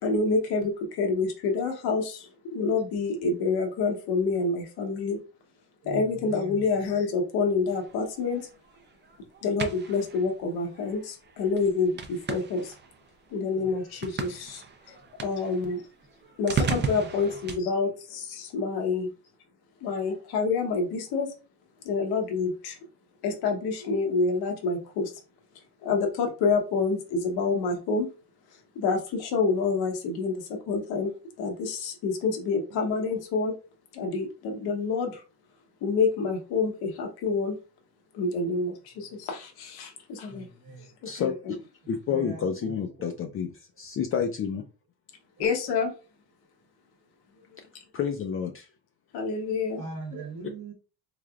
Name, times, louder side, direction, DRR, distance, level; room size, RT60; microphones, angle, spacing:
voice 1, 0.0-5.2 5.8-8.5 9.4-12.7 13.3-15.8 16.4-19.1 19.8-21.3 21.8-22.8 23.2-25.1 25.8-28.1 28.7-31.1 31.4-33.5 33.9-35.2 35.8-37.6 38.1-40.5 41.1-41.3 45.4-45.9 49.1-49.8, left 4 dB, 85° left, 1.0 m, -27 dB
voice 2, 5.8-6.6 13.5-13.7 16.2-16.3 16.7-17.1 39.1-39.2 40.3-40.9 42.1-43.1 49.7-50.7, right 4 dB, 50° right, 0.9 m, -41 dB
sound 1, 7.7-17.6, right 6 dB, 30° right, 0.5 m, -37 dB
voice 3, 41.0-41.6 41.9-44.6 47.9-48.7, left 7 dB, 35° left, 0.4 m, -29 dB
3.8 x 3.2 x 2.4 m
cardioid pair, 140°, 37 cm